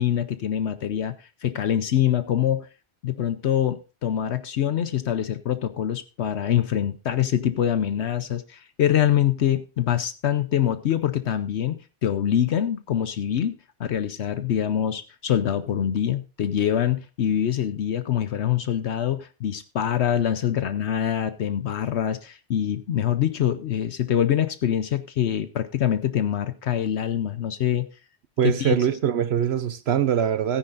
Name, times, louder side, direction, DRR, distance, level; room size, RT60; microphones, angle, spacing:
voice 1, 0.0-2.7 3.0-13.5 13.8-27.9 28.4-28.8, left 10 dB, 70° left, 1.0 m, -24 dB
voice 2, 28.4-30.6, right 9 dB, 65° right, 0.9 m, -23 dB
17.0 x 9.8 x 2.5 m
omnidirectional pair, 1.2 m